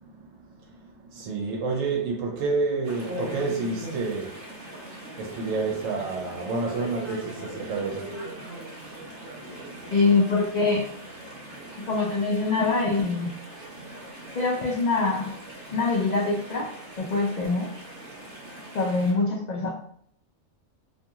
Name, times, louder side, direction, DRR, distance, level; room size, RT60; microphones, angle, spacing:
voice 1, 0.0-9.9 11.3-11.9 13.7-14.0 14.3-14.4 18.2-18.8, right 3 dB, 80° right, 1.0 m, -31 dB
Chatter / Stream, 2.8-19.1, right 1 dB, 50° right, 0.9 m, -40 dB
voice 2, 9.9-10.8 11.9-13.4 14.3-15.3 15.7-16.7 17.0-17.7 18.7-19.7, left 3 dB, 90° left, 0.3 m, -24 dB
2.8 x 2.5 x 2.3 m
omnidirectional pair, 1.4 m